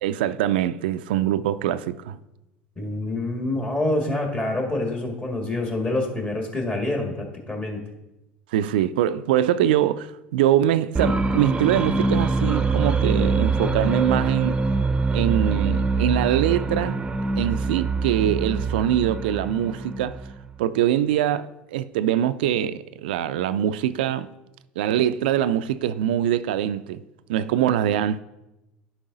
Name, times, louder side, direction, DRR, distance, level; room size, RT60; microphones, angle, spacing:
voice 1, 0.0-2.2 8.5-10.1 10.3-14.6 15.1-17.0 17.4-20.2 20.6-24.3 24.8-27.0 27.3-28.2, right 11 dB, 80° right, 0.3 m, -23 dB
voice 2, 2.8-7.8, left 2 dB, 30° left, 1.9 m, -26 dB
sound 1, 10.9-20.5, right 3 dB, 20° right, 0.6 m, -24 dB
10.5 x 4.7 x 3.9 m
hypercardioid pair, 75°, 5 cm